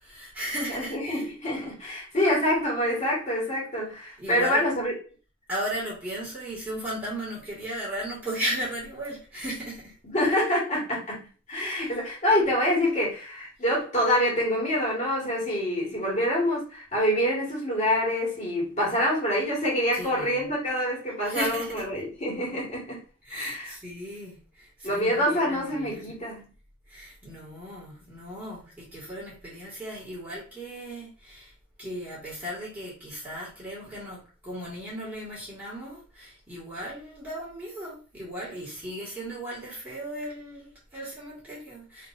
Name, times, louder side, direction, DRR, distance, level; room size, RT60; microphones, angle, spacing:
voice 1, 0.0-1.3 4.2-4.6 5.5-9.9 19.9-20.5 21.2-21.7 23.3-26.1 26.9-31.5 31.8-42.1, right 1 dB, 10° right, -8 dB, 2.0 m, -36 dB
voice 2, 0.7-4.9 10.1-23.0 23.3-23.7 24.8-26.5, equal, 35° left, -5 dB, 1.9 m, -26 dB
4.0 x 3.2 x 2.6 m, 0.38 s
head